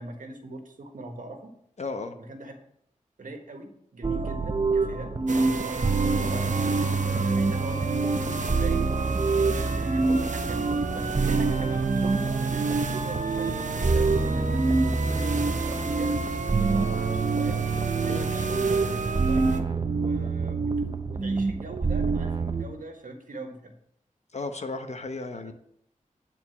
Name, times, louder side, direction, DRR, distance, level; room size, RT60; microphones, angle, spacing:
voice 1, 0.0-1.6 2.2-2.5 3.2-6.5 7.0-8.8 9.4-16.2 16.6-17.6 17.9-23.7 25.4-25.5, right 2 dB, 85° right, 4 dB, 1.6 m, -41 dB
voice 2, 1.8-2.2 18.1-18.3 24.3-25.5, left 3 dB, 55° left, 7 dB, 1.1 m, -34 dB
sound 1, 4.0-22.6, right 4 dB, 35° right, 0.8 m, -26 dB
sound 2, 5.3-19.6, right 4 dB, 70° right, 1.0 m, -32 dB
9.6 x 4.6 x 7.0 m, 0.70 s
wide cardioid pair, 75°, 13 cm